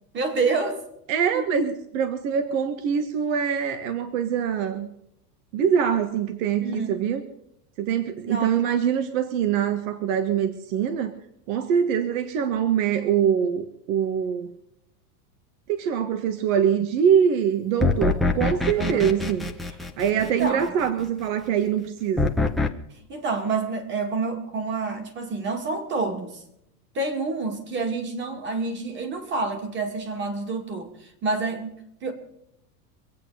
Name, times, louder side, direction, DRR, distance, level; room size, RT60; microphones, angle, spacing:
voice 1, 0.1-0.8 1.3-1.4 6.6-7.0 8.3-8.7 18.8-19.1 20.2-20.7 23.1-26.4 26.9-32.1, right 3 dB, 25° right, 5 dB, 2.3 m, -28 dB
voice 2, 1.1-4.9 5.5-7.2 7.8-11.1 11.5-14.5 15.7-19.5 20.0-22.3, right 8 dB, 60° right, 8 dB, 1.6 m, -24 dB
sound 1, 17.8-20.7 22.2-22.7, left 3 dB, ahead, 0.7 m, -24 dB
25.5 x 8.7 x 5.0 m, 0.81 s
supercardioid pair, 165°, 46 cm